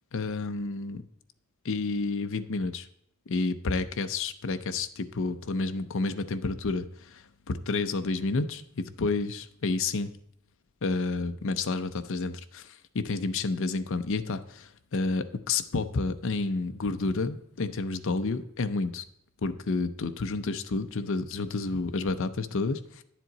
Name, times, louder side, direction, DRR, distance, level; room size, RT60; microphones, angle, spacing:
voice 1, 0.1-1.0 1.6-2.9 3.3-10.1 10.8-19.0 19.4-23.0, left 3 dB, 65° left, 10 dB, 0.6 m, -30 dB
10.5 x 7.4 x 4.0 m, 0.69 s
head